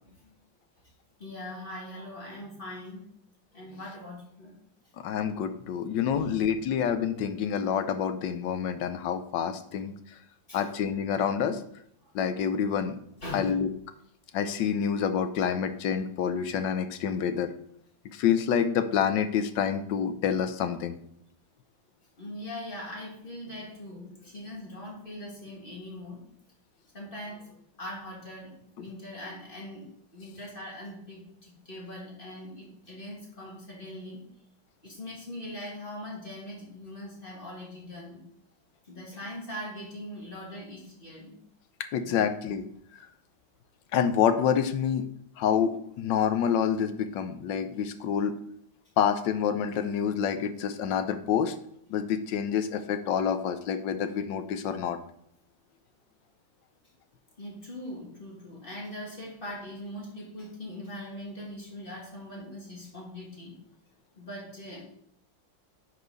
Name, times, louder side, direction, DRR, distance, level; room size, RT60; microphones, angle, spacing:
voice 1, 1.2-3.0 3.5-4.6 6.1-6.3 10.5-10.6 12.0-12.1 13.2-13.5 22.2-26.2 26.9-34.3 34.8-38.3 38.9-41.4 42.0-42.2 57.4-63.5 64.2-64.8, left 1 dB, 30° left, -3 dB, 2.3 m, -41 dB
voice 2, 5.0-9.9 10.5-11.6 12.1-13.0 13.3-13.7 14.3-17.5 18.1-21.0 41.8-42.7 42.9-43.0 43.9-45.1 45.4-48.3 49.0-51.5 51.9-55.0, left 8 dB, 75° left, 10 dB, 1.4 m, -27 dB
10.5 x 5.1 x 4.0 m, 0.70 s
omnidirectional pair, 2.0 m